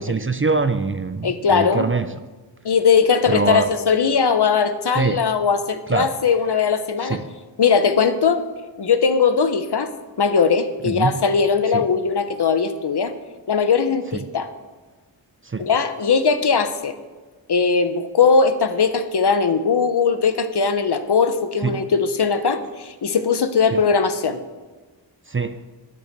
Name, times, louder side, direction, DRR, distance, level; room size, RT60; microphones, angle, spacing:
voice 1, 0.0-2.2 3.3-3.7 4.9-5.2 5.9-6.1 7.0-7.3 10.8-11.1 11.7-11.9 14.1-14.2 15.4-15.7 21.6-21.9 23.7-23.8 25.3-25.7, right 4 dB, 30° right, 0.5 m, -24 dB
voice 2, 1.2-1.8 2.6-7.2 7.6-8.4 8.8-9.9 10.2-13.1 13.5-14.5 15.6-17.0 17.5-24.4, left 5 dB, 60° left, 0.9 m, -19 dB
9.1 x 8.6 x 6.7 m
wide cardioid pair, 80°, 45 cm